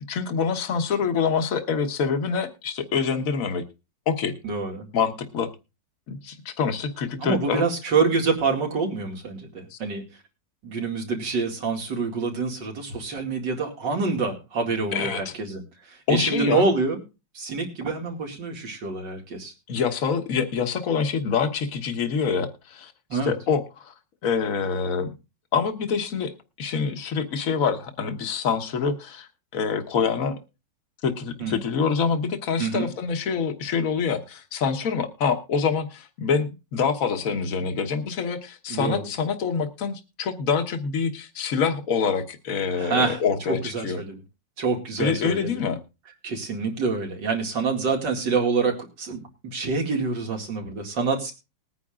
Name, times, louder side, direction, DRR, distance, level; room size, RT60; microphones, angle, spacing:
voice 1, 0.1-3.6 4.1-4.3 4.9-5.5 6.1-7.6 9.7-9.8 14.9-15.3 16.1-16.6 19.7-23.9 24.2-25.1 25.5-26.3 26.6-30.4 31.0-44.0 45.0-45.8, left 6 dB, 50° left, 7 dB, 1.5 m, -26 dB
voice 2, 4.4-4.9 7.2-10.0 10.6-15.6 15.9-17.0 17.3-19.5 23.1-23.3 31.4-31.6 32.6-32.9 38.7-39.0 42.7-43.2 43.5-44.2 44.6-45.6 46.2-51.3, right 4 dB, 75° right, 2 dB, 2.9 m, -26 dB
20.5 x 9.6 x 2.5 m, 0.29 s
omnidirectional pair, 1.9 m